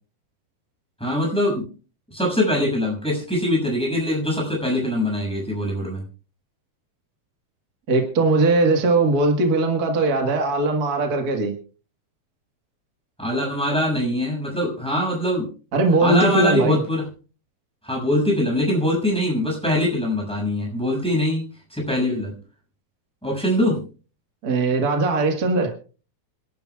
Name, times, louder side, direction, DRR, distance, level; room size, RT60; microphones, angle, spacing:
voice 1, 1.0-1.7 2.1-6.0 13.2-15.5 16.0-17.0 17.8-21.4 21.7-22.3 23.2-23.8, left 1 dB, ahead, -2 dB, 6.5 m, -23 dB
voice 2, 7.9-11.5 15.7-16.8 24.4-25.7, right 2 dB, 45° right, 3 dB, 1.3 m, -20 dB
27.0 x 12.0 x 2.4 m, 0.38 s
omnidirectional pair, 4.0 m